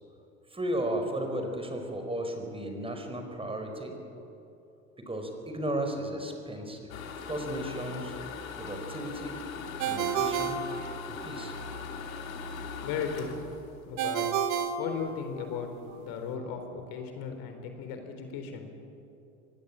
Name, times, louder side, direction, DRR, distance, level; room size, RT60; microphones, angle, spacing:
voice 1, 0.5-3.9 5.0-6.9 7.3-8.2 8.6-9.4 9.9-10.6 11.1-11.6, right 1 dB, 15° right, 4 dB, 4.8 m, -34 dB
sound 1, 6.9-14.7 15.1-15.2 15.6-15.7 15.9-16.3, left 5 dB, 75° left, 2.8 m, -40 dB
Ringtone, 9.8-11.5 14.0-15.7, right 7 dB, 45° right, 2.3 m, -31 dB
voice 2, 12.4-13.3 13.8-14.3 14.8-18.8, left 6 dB, 55° left, 6 dB, 3.9 m, -36 dB
24.5 x 20.0 x 8.6 m, 2.8 s
hypercardioid pair, 80°, 42 cm